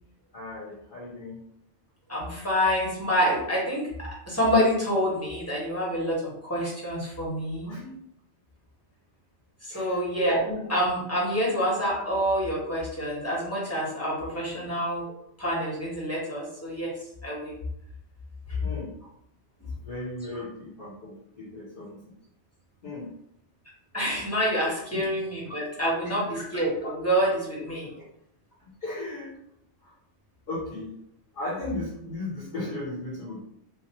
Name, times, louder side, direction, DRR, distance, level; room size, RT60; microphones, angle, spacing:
voice 1, 0.3-1.4 7.6-7.8 9.7-10.0 18.6-18.9 19.8-22.0 22.8-23.1 24.9-25.0 28.8-29.3 29.8-29.9 30.5-30.9 31.3-33.4, left 2 dB, 55° left, -5 dB, 0.9 m, -36 dB
voice 2, 2.1-7.9 9.6-16.9 17.2-17.6 18.5-18.6 20.3-20.4 23.9-27.9, equal, 15° left, -6 dB, 1.3 m, -27 dB
3.4 x 2.8 x 3.0 m, 0.75 s
omnidirectional pair, 1.1 m